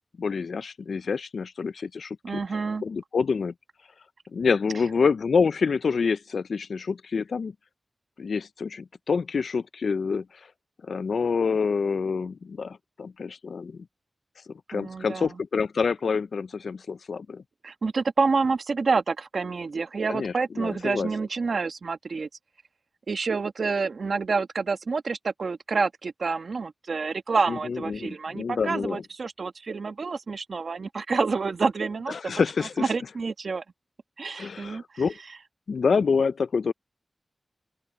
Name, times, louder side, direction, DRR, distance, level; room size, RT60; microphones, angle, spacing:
voice 1, 0.2-2.4 2.8-3.5 4.3-7.5 8.2-10.5 10.8-13.9 14.7-17.4 20.1-21.1 27.5-29.0 32.1-32.9 34.4-35.2 35.7-36.7, left 5 dB, 85° left, 0.4 m, -27 dB
voice 2, 2.2-2.8 14.7-15.3 17.6-22.3 23.1-32.3 32.8-33.6 34.2-35.0, right 4 dB, 75° right, 1.5 m, -28 dB
open air
cardioid pair, 50°, 0 cm